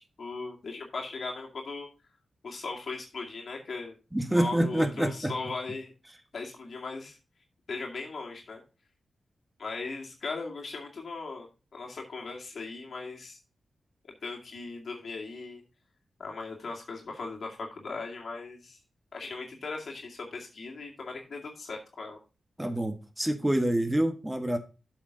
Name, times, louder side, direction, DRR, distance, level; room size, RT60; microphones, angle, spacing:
voice 1, 0.0-1.9 2.4-4.0 4.3-5.9 6.3-7.2 7.7-8.6 9.6-13.4 14.0-15.6 16.2-18.8 19.1-22.2, left 3 dB, 65° left, 2.2 m, -38 dB
voice 2, 4.1-5.3 22.6-24.6, right 1 dB, 10° right, 1.4 m, -27 dB
7.9 x 6.4 x 3.9 m
cardioid pair, 55°, 0 cm